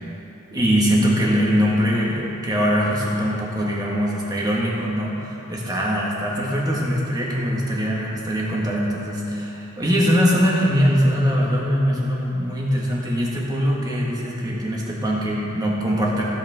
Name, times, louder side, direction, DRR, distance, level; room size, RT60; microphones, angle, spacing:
voice 1, 0.5-16.2, equal, 20° right, -4 dB, 1.8 m, -22 dB
16.0 x 8.1 x 3.7 m, 3.0 s
head